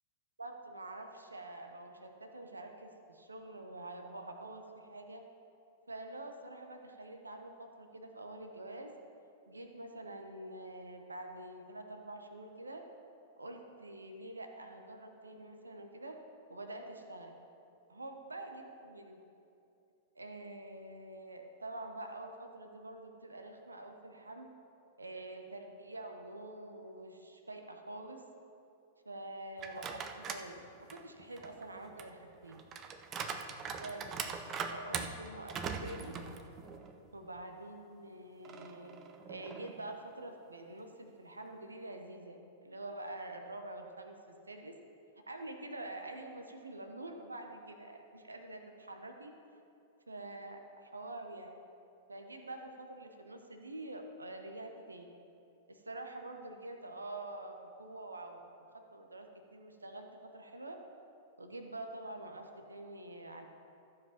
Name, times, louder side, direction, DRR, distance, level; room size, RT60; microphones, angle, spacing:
voice 1, 0.4-5.2 5.9-8.9 9.5-12.8 13.4-16.2 16.5-17.3 17.9-19.2 20.2-24.5 25.0-28.2 29.0-30.6 30.9-32.6 33.8-34.0 34.7-36.1 37.1-39.0 39.3-44.8 45.3-49.3 50.1-51.5 52.1-55.1 55.7-58.4 58.9-60.8 61.4-63.5, right 2 dB, 85° right, 5 dB, 0.9 m, -46 dB
sound 1, 29.6-30.5 30.9-37.0 37.4-37.5 38.4-39.9, right 6 dB, 30° right, 0.7 m, -42 dB
14.0 x 5.1 x 5.8 m, 2.8 s
figure-of-eight pair, 100°, 0 cm